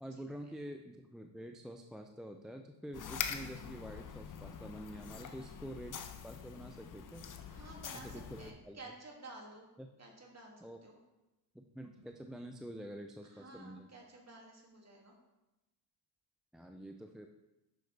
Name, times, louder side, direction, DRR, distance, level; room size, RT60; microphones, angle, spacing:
voice 1, 0.0-6.0 6.2-7.3 8.0-8.8 9.8-9.9 10.6-10.8 11.5-13.9 16.5-17.3, equal, ahead, 4 dB, 0.4 m, -47 dB
sound 1, 2.9-8.5, left 7 dB, 40° left, 0.8 m, -44 dB
voice 2, 5.1-5.5 7.5-9.7 10.0-11.0 13.2-15.2, right 2 dB, 30° right, -1 dB, 2.4 m, -53 dB
8.0 x 6.4 x 3.4 m, 1.0 s
supercardioid pair, 65°, 49 cm